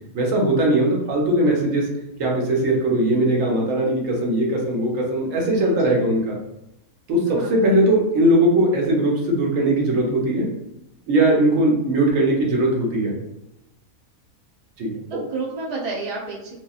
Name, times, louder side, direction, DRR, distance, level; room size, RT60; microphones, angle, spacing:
voice 1, 0.1-1.9 2.2-6.4 7.1-10.5 11.1-13.2 14.8-15.2, right 1 dB, 65° right, -1 dB, 1.0 m, -20 dB
voice 2, 5.6-6.0 7.3-7.6 14.9-16.5, right 3 dB, 45° right, -4 dB, 0.5 m, -31 dB
2.9 x 2.3 x 2.3 m, 0.88 s
omnidirectional pair, 1.5 m